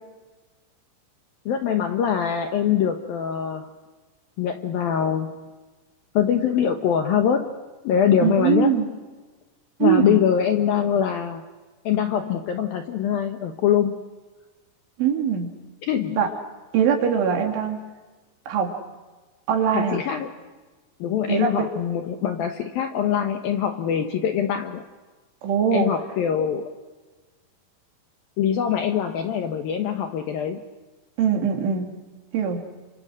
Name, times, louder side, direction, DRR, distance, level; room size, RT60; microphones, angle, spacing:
voice 1, 1.5-3.7 4.4-5.4 6.1-7.5 7.8-8.8 9.8-11.4 11.9-14.0 15.8-16.3 19.7-20.3 21.0-24.8 25.7-26.7 28.4-30.6, left 8 dB, 70° left, 5 dB, 2.3 m, -23 dB
voice 2, 8.2-8.9 9.8-10.2 15.0-15.5 16.2-16.3 16.7-17.8 18.5-18.7 19.5-20.0 21.3-21.7 25.4-25.9 31.2-31.9 32.3-32.6, right 7 dB, 75° right, 3 dB, 5.0 m, -22 dB
30.0 x 25.5 x 6.4 m, 1.3 s
omnidirectional pair, 5.6 m